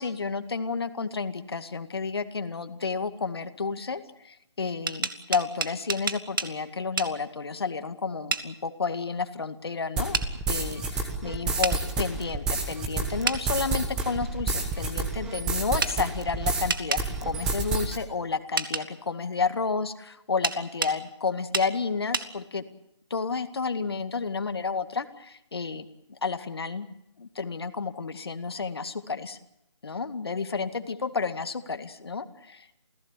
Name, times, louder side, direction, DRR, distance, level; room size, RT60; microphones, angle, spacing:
voice 1, 0.0-10.2 10.5-22.6 23.1-26.9 27.2-29.4 29.8-32.7, left 4 dB, 55° left, 9 dB, 2.2 m, -31 dB
sound 1, 4.7-6.5 7.0-7.1 8.3-8.5 10.1-10.3 11.6-11.8 13.3-13.4 15.8-16.0 16.7-17.1 18.6-18.9 20.4-21.0 21.5-21.7 22.1-22.3, right 5 dB, 45° right, 2.0 m, -28 dB
sound 2, 10.0-16.7 17.0-18.0, right 3 dB, 5° right, 1.3 m, -29 dB
29.0 x 16.5 x 8.4 m, 0.80 s
hypercardioid pair, 170°, 15 cm